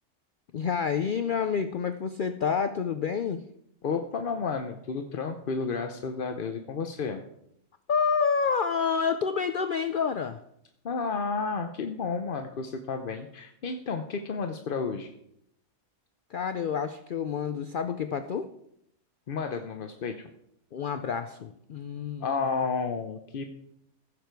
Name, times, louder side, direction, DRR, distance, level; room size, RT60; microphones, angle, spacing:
voice 1, 0.5-3.4 7.9-10.4 16.3-18.5 20.7-22.4, left 6 dB, 85° left, 9 dB, 0.4 m, -28 dB
voice 2, 3.8-7.2 10.8-15.1 19.3-20.3 22.2-23.4, left 5 dB, 50° left, 5 dB, 0.7 m, -31 dB
15.5 x 7.0 x 4.6 m, 0.76 s
omnidirectional pair, 1.5 m